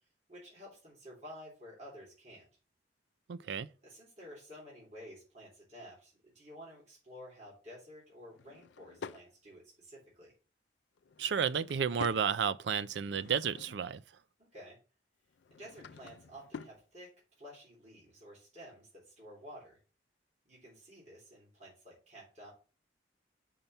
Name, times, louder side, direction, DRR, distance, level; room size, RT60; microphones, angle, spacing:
voice 1, 0.3-2.5 3.8-10.3 14.4-14.8 15.5-17.1 17.4-19.8 20.4-22.5, equal, 40° right, 3.4 m, -52 dB
voice 2, 3.3-3.7 11.2-14.0, right 7 dB, 70° right, 0.4 m, -32 dB
Drawer open or close / Wood, 8.3-9.3 11.0-12.3 12.8-14.0 15.3-16.8, left 5 dB, 75° left, 0.4 m, -49 dB
5.6 x 4.4 x 5.4 m
head